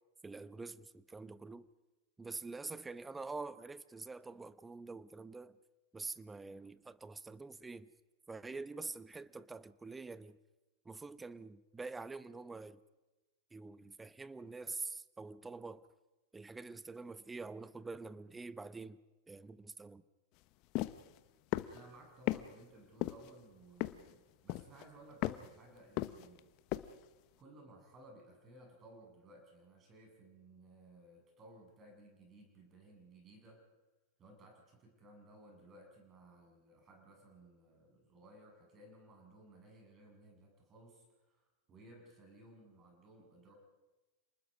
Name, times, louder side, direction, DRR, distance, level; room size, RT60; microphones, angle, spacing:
voice 1, 0.2-1.7 2.2-5.6 5.9-7.9 8.3-10.4 10.8-12.8 13.5-15.8 16.3-19.0 19.3-20.0, right 3 dB, 10° right, 0.8 m, -46 dB
sound 1, 20.7-21.0 21.5-21.8 22.3-22.4 23.0-23.3 23.8-24.1 24.5-24.8 25.2-25.5 26.0-26.4 26.7-26.9, left 18 dB, 50° left, 0.9 m, -35 dB
voice 2, 21.7-26.5 27.4-33.6 34.2-43.5, right 1 dB, 30° right, 7.9 m, -59 dB
28.5 x 20.0 x 5.4 m
hypercardioid pair, 100°, 0 cm